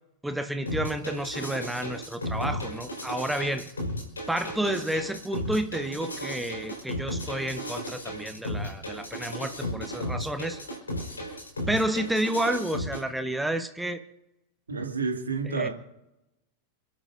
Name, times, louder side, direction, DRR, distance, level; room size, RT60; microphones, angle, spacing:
voice 1, 0.2-3.7 4.3-10.6 11.7-14.0 15.5-15.7, right 1 dB, 5° right, 8 dB, 1.1 m, -30 dB
sound 1, 0.7-13.0, left 1 dB, 75° left, 4.6 m, -35 dB
voice 2, 14.7-15.7, right 4 dB, 75° right, 3 dB, 2.5 m, -29 dB
29.0 x 12.0 x 2.7 m, 0.88 s
figure-of-eight pair, 90°, 0 cm